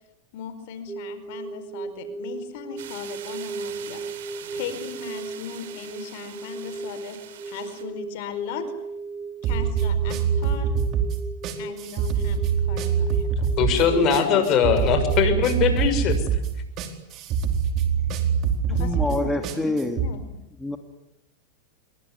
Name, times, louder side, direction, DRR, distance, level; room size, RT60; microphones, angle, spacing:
voice 1, 0.3-4.0 4.5-8.7 9.4-10.7 11.6-14.9 18.7-20.4, left 8 dB, 65° left, 11 dB, 4.8 m, -38 dB
sound 1, 0.9-15.4, right 4 dB, 15° right, 3.0 m, -36 dB
sound 2, 2.8-7.8, right 11 dB, 75° right, 4.6 m, -43 dB
sound 3, 9.4-20.1, right 7 dB, 45° right, 4.3 m, -24 dB
voice 2, 13.6-16.2, left 7 dB, 45° left, 9 dB, 6.6 m, -21 dB
voice 3, 18.8-20.0 20.6-20.8, left 2 dB, 5° left, 5 dB, 2.4 m, -26 dB
26.0 x 23.5 x 9.8 m, 0.84 s
hypercardioid pair, 115°, 0 cm